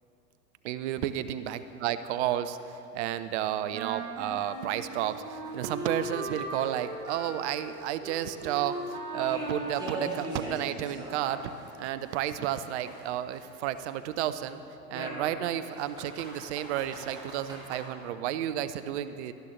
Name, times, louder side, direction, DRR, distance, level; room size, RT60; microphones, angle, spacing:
voice 1, 0.6-11.4 11.8-14.6 14.9-19.3, right 11 dB, 45° right, 12 dB, 0.6 m, -32 dB
sound 1, 1.0-1.1 1.5-1.6 2.0-2.1 2.6-2.7 3.2-3.3 3.7-3.8 4.3-6.8 7.1-11.7 12.0-14.1 14.9-17.8, right 1 dB, 10° right, 3.0 m, -43 dB
Wind instrument woodwind instrument, 3.7-10.9, right 2 dB, 65° right, 2.0 m, -38 dB
18.0 x 11.5 x 3.1 m, 2.9 s
figure-of-eight pair, 95°, 49 cm